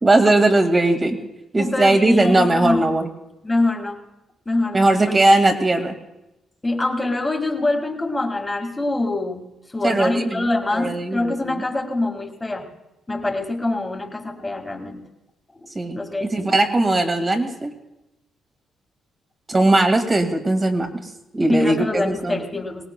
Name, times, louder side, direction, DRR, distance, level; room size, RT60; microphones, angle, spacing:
voice 1, 0.0-1.2 1.5-3.1 4.7-5.9 9.8-11.5 15.8-17.7 19.5-21.0 21.3-22.4, right 2 dB, 25° right, 5 dB, 1.9 m, -19 dB
voice 2, 1.6-2.9 3.4-4.0 4.5-5.1 6.6-9.5 9.7-12.7 13.1-15.0 15.9-16.5 21.5-22.9, left 2 dB, 20° left, 4 dB, 1.9 m, -24 dB
22.0 x 18.5 x 2.2 m, 0.95 s
cardioid pair, 90°, 0 cm